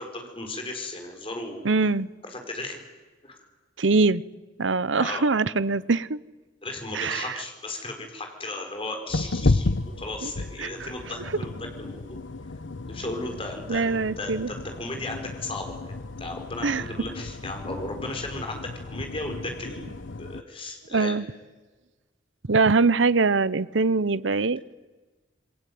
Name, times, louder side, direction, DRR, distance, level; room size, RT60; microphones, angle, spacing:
voice 1, 0.0-1.7 2.2-2.8 3.2-3.5 5.0-5.2 6.6-12.2 12.9-21.2, left 2 dB, 30° left, 3 dB, 4.9 m, -36 dB
voice 2, 1.6-2.1 3.8-4.2 4.6-6.2 6.9-7.3 10.2-10.3 10.6-10.9 13.7-14.5 16.6-16.8 20.9-21.2 22.5-24.7, right 4 dB, 80° right, 18 dB, 0.9 m, -23 dB
sound 1, 9.1-20.4, left 2 dB, 80° left, 0.9 m, -32 dB
28.0 x 22.0 x 9.5 m, 1.3 s
head